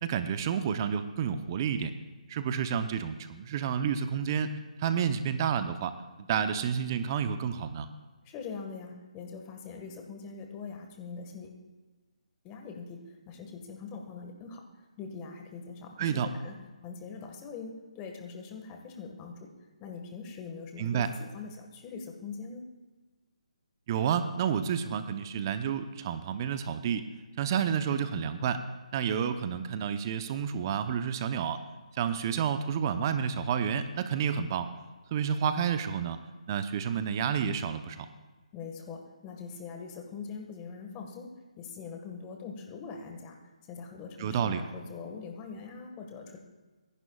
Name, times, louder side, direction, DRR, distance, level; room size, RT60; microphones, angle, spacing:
voice 1, 0.0-1.9 2.3-4.5 4.8-7.9 16.0-16.3 20.8-21.1 23.9-27.0 27.4-28.6 28.9-31.6 32.0-34.7 35.1-36.2 36.5-38.1 44.2-44.6, right 7 dB, 30° right, 10 dB, 0.8 m, -30 dB
voice 2, 8.2-11.5 12.4-14.6 15.0-16.5 16.8-19.5 19.8-22.6 38.5-41.3 41.6-43.3 43.7-46.4, left 5 dB, 20° left, 3 dB, 1.6 m, -42 dB
25.0 x 11.0 x 2.4 m, 1.3 s
figure-of-eight pair, 150°, 4 cm